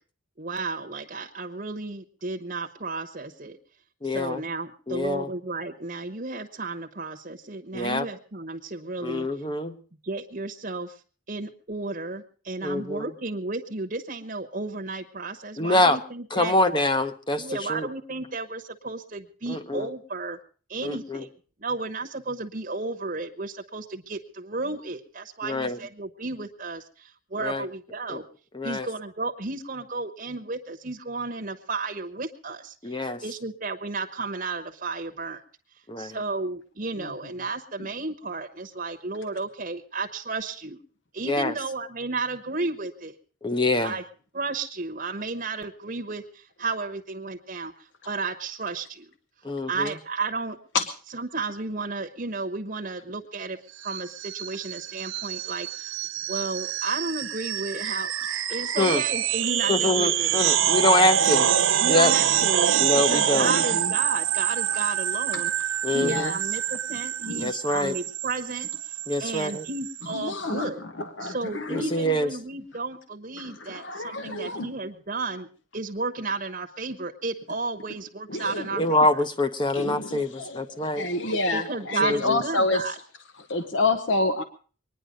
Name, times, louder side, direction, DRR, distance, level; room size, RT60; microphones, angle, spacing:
voice 1, 0.4-3.6 4.0-9.3 10.0-11.0 11.3-16.5 17.3-20.4 20.7-21.3 21.6-28.2 28.6-35.4 36.0-40.8 41.1-43.2 43.8-44.0 44.3-49.1 49.7-50.6 51.1-53.6 53.8-56.0 56.3-58.1 58.5-60.4 61.8-65.5 65.9-68.7 69.2-70.8 71.2-75.5 75.7-79.1 81.5-82.9, right 3 dB, 40° right, 4 dB, 1.0 m, -33 dB
voice 2, 4.0-4.4 4.9-5.3 7.7-8.1 9.0-9.7 12.6-13.1 15.6-16.0 16.3-17.9 19.5-19.9 20.8-21.2 25.4-25.8 27.4-27.6 28.1-28.2 28.5-28.9 32.8-33.2 35.9-36.2 41.3-41.5 43.4-43.9 49.4-49.9 58.8-59.0 59.7-61.5 61.9-62.1 62.8-63.5 65.8-66.3 67.4-67.9 69.1-69.6 71.7-72.3 78.7-81.1 82.0-82.4, left 2 dB, 20° left, 10 dB, 0.8 m, -25 dB
sound 1, 53.8-70.0, right 10 dB, 70° right, 0.8 m, -26 dB
voice 3, 63.4-63.9 66.0-66.3 67.3-67.5 70.1-72.0 73.4-74.7 78.3-78.9 79.7-82.9 83.5-84.4, left 2 dB, 60° left, 9 dB, 0.9 m, -28 dB
22.5 x 10.0 x 5.1 m, 0.40 s
head